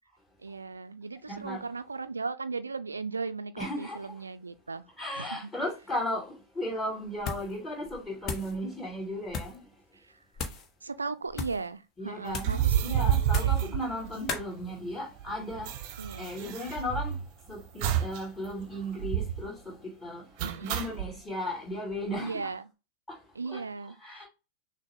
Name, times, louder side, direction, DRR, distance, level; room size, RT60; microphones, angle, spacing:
voice 1, 0.4-4.9 5.2-5.3 10.8-13.1 13.4-13.7 16.0-16.3 20.4-20.9 22.2-22.6 23.4-24.3, right 4 dB, 75° right, 0.3 m, -37 dB
voice 2, 1.3-1.6 3.6-4.1 5.0-9.6 12.0-15.8 16.2-17.2 17.5-20.3 20.6-22.5 23.1-23.2 23.4-24.3, left 1 dB, 15° left, 2.5 m, -36 dB
sound 1, 7.2-7.6 7.9-8.6 9.3-9.6 10.3-10.7 11.3-11.7 12.3-12.6 13.3-13.7 14.3-14.5, left 5 dB, 35° left, 0.9 m, -36 dB
sound 2, 12.4-14.6 14.9-15.0 15.2-17.3 17.8-18.2 18.5-18.6 19.0-19.5 20.4-21.1, right 10 dB, 45° right, 0.7 m, -29 dB
6.1 x 2.2 x 3.4 m
figure-of-eight pair, 90°, 0 cm